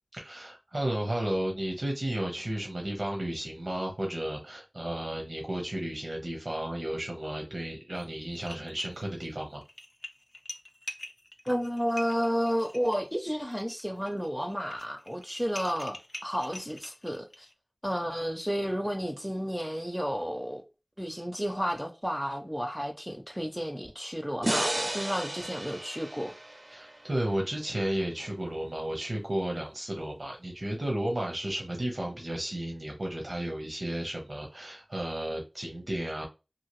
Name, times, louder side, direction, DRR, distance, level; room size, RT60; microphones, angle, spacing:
voice 1, 0.1-9.6 26.7-36.3, right 1 dB, 85° right, 0.7 m, -33 dB
sound 1, 8.0-8.1 8.3-9.3 9.6-17.5, left 1 dB, 65° left, 0.4 m, -45 dB
voice 2, 11.4-17.5 17.8-20.6 21.0-26.3, equal, 5° right, 0.4 m, -32 dB
sound 2, 24.4-27.7, right 1 dB, 60° right, 0.4 m, -33 dB
2.8 x 2.5 x 3.0 m
wide cardioid pair, 40°, 0 cm